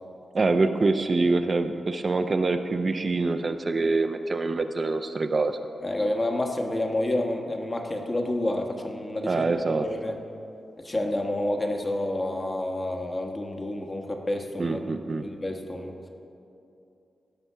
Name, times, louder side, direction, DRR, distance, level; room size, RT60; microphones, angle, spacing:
voice 1, 0.3-5.5 9.2-9.9 14.6-15.3, right 3 dB, 45° right, 7 dB, 0.5 m, -25 dB
voice 2, 5.8-9.4 9.8-10.2 10.8-14.8 15.2-15.9, left 1 dB, 30° left, 2 dB, 1.3 m, -29 dB
16.5 x 5.9 x 5.6 m, 2.7 s
cardioid pair, 80°, 0 cm